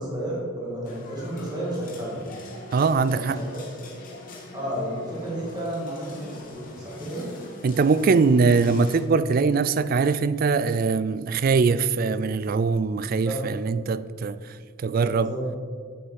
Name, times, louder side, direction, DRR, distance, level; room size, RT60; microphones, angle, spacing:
voice 1, 0.0-2.2 3.1-3.4 4.5-7.3 13.0-13.4 15.1-15.4, right 1 dB, 20° right, 2.3 m, -32 dB
sound 1, 0.8-9.0, left 2 dB, 40° left, 1.7 m, -44 dB
voice 2, 2.7-3.4 7.6-14.4 14.8-15.3, right 4 dB, 40° right, 0.3 m, -22 dB
7.9 x 7.9 x 5.2 m
head